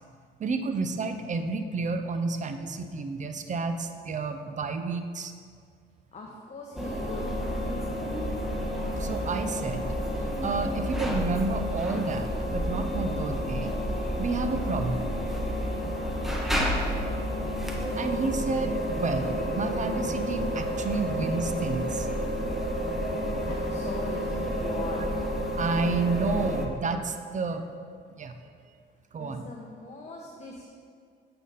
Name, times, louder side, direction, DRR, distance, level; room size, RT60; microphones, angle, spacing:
voice 1, 0.4-5.3 9.0-9.8 10.4-13.7 14.2-15.1 18.0-22.1 25.6-27.7 28.1-28.3 29.1-29.4, right 3 dB, 40° right, 8 dB, 0.6 m, -30 dB
voice 2, 6.1-7.3 12.3-12.4 13.0-13.1 19.8-19.9 23.0-25.0 29.2-30.6, left 3 dB, 35° left, -1 dB, 0.9 m, -42 dB
sound 1, 6.8-26.7, equal, ahead, 0.9 m, -30 dB
8.3 x 3.9 x 5.4 m, 2.1 s
cardioid pair, 90°, 20 cm